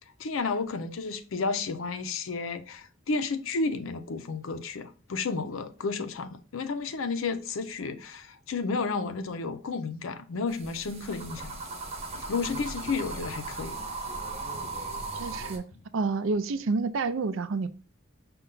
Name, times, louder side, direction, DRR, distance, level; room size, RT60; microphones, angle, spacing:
voice 1, 0.2-11.6 12.3-13.8, left 4 dB, 85° left, 0.5 m, -32 dB
sound 1, 10.5-15.6, right 3 dB, 30° right, 0.8 m, -37 dB
voice 2, 15.1-15.6 15.9-17.7, right 4 dB, 75° right, 0.4 m, -28 dB
5.3 x 2.3 x 3.7 m
head